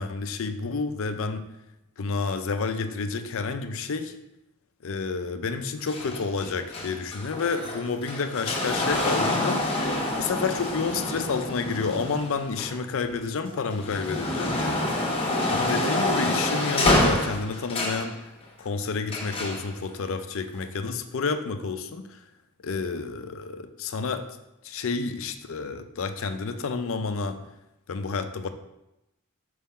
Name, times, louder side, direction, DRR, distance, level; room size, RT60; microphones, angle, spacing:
voice 1, 0.0-1.5 2.0-4.1 4.8-9.7 10.2-14.8 15.5-18.2 18.6-22.2 22.6-24.3 24.6-27.4 27.9-28.5, left 4 dB, 65° left, 9 dB, 0.5 m, -30 dB
sound 1, 5.9-13.1 13.5-18.1 19.1-19.6 20.5-20.6, left 1 dB, 25° left, 0.9 m, -27 dB
5.1 x 3.7 x 5.6 m, 0.90 s
head